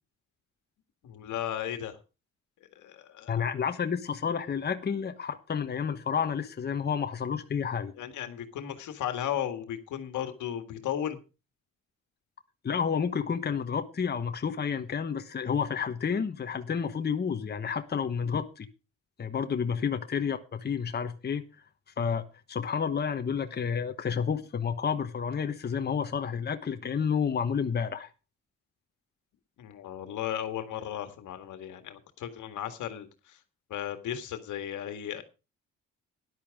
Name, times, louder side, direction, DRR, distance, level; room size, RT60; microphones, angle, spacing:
voice 1, 1.0-2.0 2.7-3.4 8.0-11.2 19.7-19.8 29.6-33.4 33.7-35.2, left 10 dB, 80° left, 1.8 m, -35 dB
voice 2, 3.3-7.9 12.6-18.7 19.2-21.4 22.0-28.1, left 6 dB, 35° left, 1.1 m, -30 dB
13.0 x 11.0 x 3.6 m
cardioid pair, 90°, 30 cm